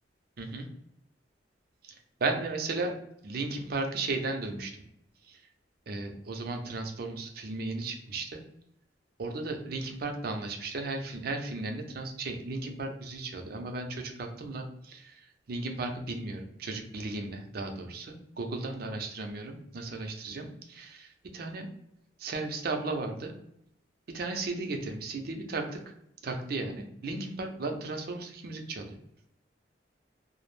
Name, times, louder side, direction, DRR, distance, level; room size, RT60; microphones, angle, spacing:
voice 1, 0.4-0.7 1.8-2.9 3.2-4.8 5.2-5.4 5.9-8.4 9.2-21.7 22.2-23.3 24.1-25.8 26.2-29.0, right 3 dB, 55° right, 4 dB, 0.5 m, -35 dB
2.3 x 2.0 x 3.0 m, 0.77 s
head